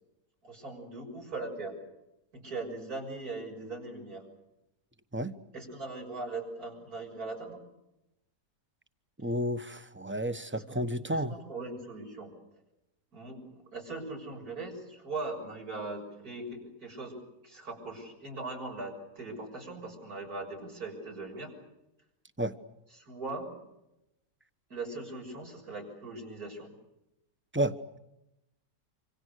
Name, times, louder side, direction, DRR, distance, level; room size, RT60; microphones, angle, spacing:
voice 1, 0.4-1.8 2.3-4.3 5.5-7.6 10.5-10.8 11.3-12.4 13.1-17.2 17.4-21.5 22.9-23.5 24.7-26.7, right 3 dB, 80° right, 1 dB, 7.1 m, -40 dB
voice 2, 9.2-11.4 22.4-22.5 27.5-28.0, right 1 dB, 10° right, 10 dB, 1.0 m, -31 dB
27.5 x 26.0 x 6.6 m, 0.90 s
omnidirectional pair, 1.6 m